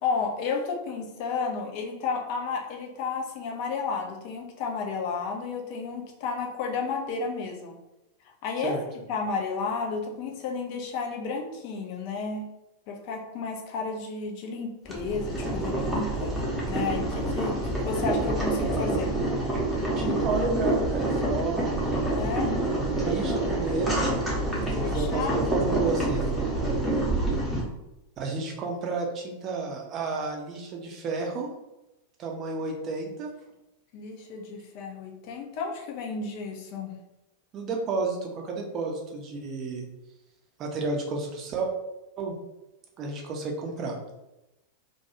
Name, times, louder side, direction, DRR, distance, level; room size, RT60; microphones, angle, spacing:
voice 1, 0.0-7.8 8.3-8.7 9.1-12.4 12.9-16.3 16.7-19.1 22.1-22.5 24.5-25.4 33.9-36.9, left 4 dB, 45° left, 1 dB, 0.5 m, -32 dB
Boiling, 14.8-27.6, right 1 dB, 5° right, 0.8 m, -27 dB
voice 2, 20.0-21.7 22.7-24.1 24.8-26.2 28.2-31.5 32.2-33.3 37.5-39.8 40.6-41.7 42.2-42.4 43.0-43.9, right 3 dB, 30° right, 0 dB, 0.5 m, -31 dB
2.3 x 2.2 x 2.8 m, 0.95 s
figure-of-eight pair, 90°, 0 cm